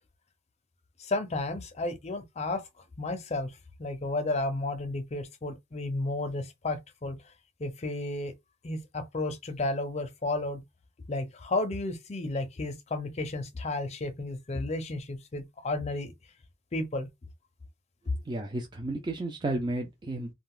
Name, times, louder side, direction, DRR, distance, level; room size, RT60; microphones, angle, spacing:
voice 1, 1.0-2.6 3.0-3.5 3.8-7.2 7.6-8.3 8.6-10.6 11.1-16.1 16.7-17.1, left 2 dB, 35° left, 0.5 m, -32 dB
voice 2, 18.3-20.3, right 2 dB, 20° right, 0.4 m, -32 dB
2.4 x 2.3 x 3.6 m
head